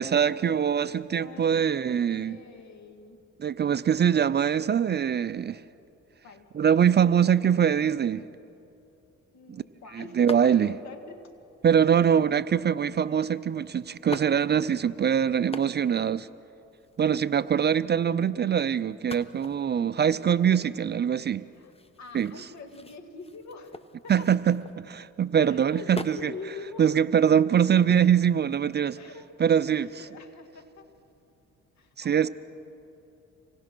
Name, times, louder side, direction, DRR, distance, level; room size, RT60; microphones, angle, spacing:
voice 1, 0.0-2.3 3.4-5.6 6.5-8.2 9.5-9.6 9.9-10.7 11.6-16.3 17.0-21.4 22.1-22.3 24.1-26.3 26.8-29.0 29.4-30.0 32.0-32.3, right 8 dB, 35° right, 0.5 m, -23 dB
voice 2, 1.2-3.2 6.2-6.5 9.3-11.3 19.7-20.3 21.4-21.7 22.0-24.3 25.5-27.1 29.0-29.3 29.7-30.9 31.8-32.3, left 4 dB, 65° left, 2.0 m, -44 dB
sound 1, 10.3-10.9 11.7-12.2 13.3-13.4 13.9-14.9 15.3-16.1 16.4-16.5 16.6-17.7 18.9-25.1 25.5-26.4 26.8-28.6, left 2 dB, 20° left, 1.0 m, -43 dB
26.0 x 19.0 x 6.1 m
cardioid pair, 90°, 30 cm